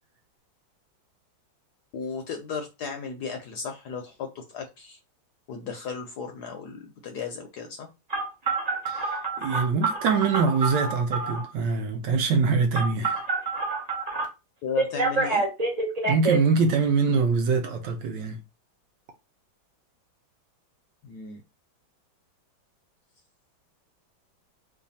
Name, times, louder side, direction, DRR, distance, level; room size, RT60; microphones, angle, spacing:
voice 1, 1.9-5.0 5.5-7.9 14.6-15.4 21.0-21.4, left 6 dB, 70° left, 1.0 m, -35 dB
Telephone, 8.1-11.5 12.7-14.2 14.8-16.4, right 4 dB, 50° right, 0.4 m, -27 dB
voice 2, 8.9-13.2 16.0-18.4, right 4 dB, 75° right, 1.2 m, -24 dB
3.2 x 2.3 x 4.0 m
omnidirectional pair, 2.2 m